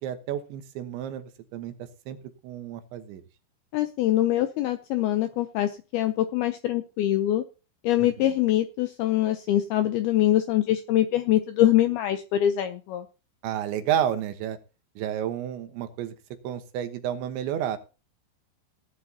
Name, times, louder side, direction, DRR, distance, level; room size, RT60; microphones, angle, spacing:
voice 1, 0.0-1.7 2.1-2.2 2.4-3.2 8.0-8.3 13.4-14.6 15.0-16.1 16.4-17.8, right 10 dB, 80° right, 8 dB, 3.5 m, -31 dB
voice 2, 3.7-7.4 7.8-13.1, left 13 dB, 80° left, 9 dB, 2.3 m, -24 dB
18.0 x 10.5 x 2.8 m, 0.32 s
omnidirectional pair, 5.3 m